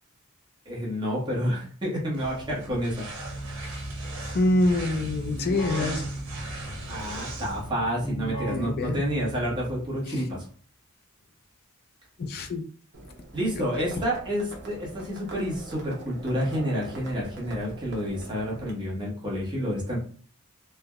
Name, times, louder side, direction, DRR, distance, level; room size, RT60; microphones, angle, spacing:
voice 1, 0.6-3.1 6.9-10.4 13.3-20.0, equal, 20° right, -5 dB, 1.0 m, -29 dB
sound 1, 2.1-7.7, right 1 dB, 80° right, 0.9 m, -39 dB
Keyboard (musical), 3.2-10.0, right 1 dB, 25° left, 0.7 m, -37 dB
voice 2, 4.2-6.0 8.5-9.0 12.2-12.6, left 2 dB, 50° left, 6 dB, 0.4 m, -25 dB
Livestock farm animals working animals, 12.9-18.7, right 2 dB, 55° right, 0.7 m, -43 dB
3.3 x 2.1 x 2.3 m, 0.43 s
head